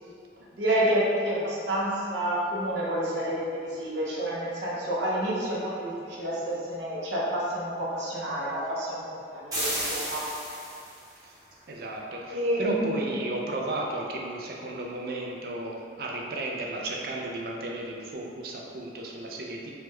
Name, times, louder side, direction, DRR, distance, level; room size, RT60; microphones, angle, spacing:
voice 1, 0.6-9.0 9.3-10.3 12.3-13.2, right 1 dB, 80° right, -6 dB, 0.7 m, -29 dB
sound 1, 9.5-11.1, right 1 dB, 20° right, 0.8 m, -32 dB
voice 2, 11.7-19.7, right 2 dB, 55° right, -1 dB, 0.4 m, -34 dB
3.4 x 2.2 x 3.1 m, 2.4 s
head